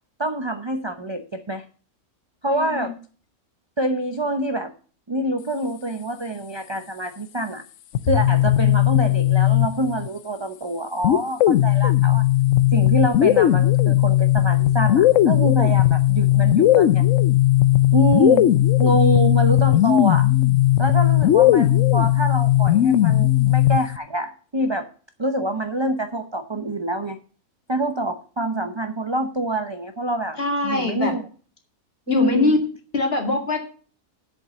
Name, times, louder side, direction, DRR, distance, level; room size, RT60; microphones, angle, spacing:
voice 1, 0.2-1.6 2.4-2.9 3.8-4.7 5.1-7.6 8.0-12.2 12.7-17.0 17.9-18.5 18.8-20.3 20.8-24.9 25.2-27.2 27.7-30.4 30.6-31.2 32.1-32.5, right 1 dB, 30° right, 7 dB, 0.5 m, -25 dB
voice 2, 2.5-3.0 19.0-19.3 30.4-31.1 32.1-32.6 32.9-33.6, left 3 dB, 40° left, 3 dB, 2.3 m, -23 dB
sound 1, 7.9-10.1 11.0-24.0, left 14 dB, 65° left, 0.9 m, -17 dB
7.9 x 7.0 x 6.9 m, 0.41 s
omnidirectional pair, 1.6 m